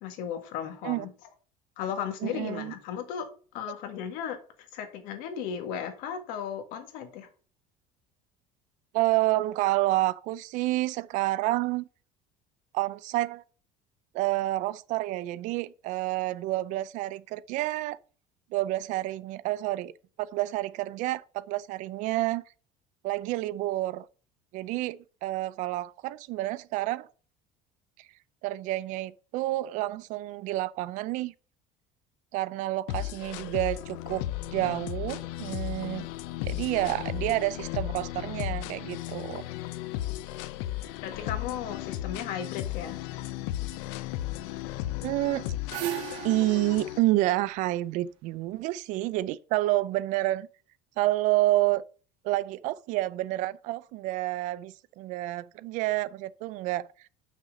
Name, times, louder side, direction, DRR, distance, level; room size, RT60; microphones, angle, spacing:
voice 1, 0.0-1.1 1.8-3.3 3.5-7.3 41.0-43.0, left 8 dB, 65° left, 1.7 m, -35 dB
voice 2, 2.2-2.7 8.9-11.8 12.7-13.4 14.1-18.0 18.5-19.9 20.2-22.4 23.0-24.1 24.5-27.1 28.4-31.3 32.3-34.2 34.5-36.1 36.4-39.4 45.0-45.5 46.2-50.5 51.0-51.8 52.2-56.9, right 17 dB, 55° right, 0.5 m, -29 dB
sound 1, 32.9-47.0, left 14 dB, 85° left, 0.6 m, -35 dB
sound 2, 45.2-48.4, right 12 dB, 90° right, 1.7 m, -37 dB
6.1 x 5.6 x 6.6 m
cardioid pair, 165°, 15 cm